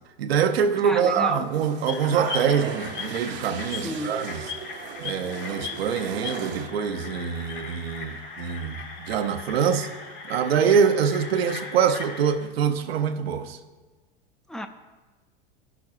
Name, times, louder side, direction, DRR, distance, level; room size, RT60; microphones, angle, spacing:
voice 1, 0.2-4.4 5.0-9.9 10.3-13.6, right 7 dB, 90° right, 0.7 m, -24 dB
voice 2, 0.8-1.5 3.8-4.2 14.5-14.7, left 1 dB, ahead, 0.3 m, -31 dB
sound 1, 1.0-6.7, right 7 dB, 40° right, 0.6 m, -37 dB
sound 2, 1.9-12.3, left 4 dB, 65° left, 2.6 m, -38 dB
13.5 x 5.9 x 2.4 m
hypercardioid pair, 110°, 30 cm